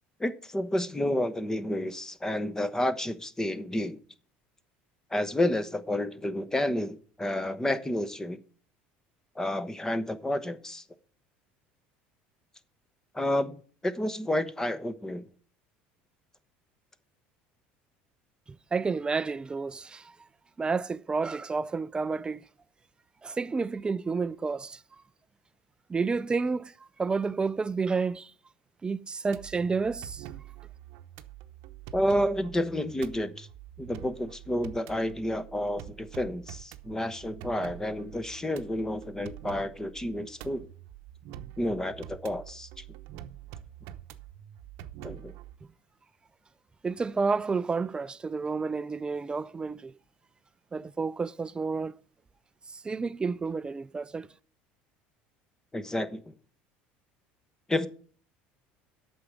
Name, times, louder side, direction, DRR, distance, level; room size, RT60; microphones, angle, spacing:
voice 1, 0.2-4.0 5.1-8.4 9.4-10.8 13.1-15.2 31.9-33.5 33.8-40.7 41.6-42.8 45.0-45.3 55.7-56.3 57.7-57.9, left 1 dB, 10° left, 1.0 m, -30 dB
voice 2, 18.7-20.2 20.6-22.4 23.2-24.8 25.9-26.7 27.0-28.3 28.8-30.3 46.8-49.9 50.7-52.0 52.7-54.3, right 4 dB, 20° right, 0.4 m, -30 dB
sound 1, 29.3-45.6, right 12 dB, 70° right, 0.8 m, -46 dB
8.5 x 6.2 x 8.0 m
supercardioid pair, 100°, 5 cm